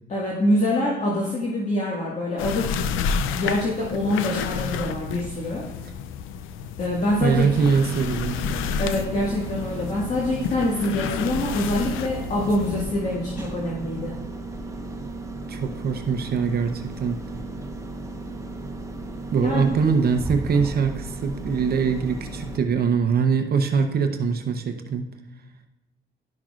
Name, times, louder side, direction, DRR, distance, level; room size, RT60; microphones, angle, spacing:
voice 1, 0.1-2.7 3.3-5.6 6.8-7.5 8.8-14.1 19.4-19.7, left 1 dB, 35° left, -5 dB, 1.8 m, -25 dB
sound 1, 2.4-12.8, left 6 dB, 90° left, 0.5 m, -30 dB
sound 2, 7.1-22.6, right 2 dB, 15° right, 1.0 m, -35 dB
voice 2, 7.2-8.4 15.5-17.2 19.3-25.1, right 5 dB, 50° right, 6 dB, 0.7 m, -23 dB
11.5 x 5.9 x 2.4 m, 1.0 s
cardioid pair, 90°, 20 cm